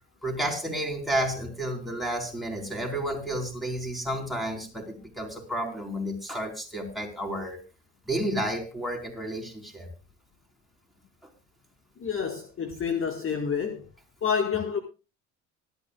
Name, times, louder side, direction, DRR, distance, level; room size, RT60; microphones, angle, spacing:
voice 1, 0.2-7.6 8.1-9.9, right 1 dB, ahead, 4.7 m, -31 dB
voice 2, 12.0-13.9 14.2-14.8, left 7 dB, 35° left, 1.9 m, -28 dB
25.0 x 9.5 x 2.4 m
figure-of-eight pair, 60°, 38 cm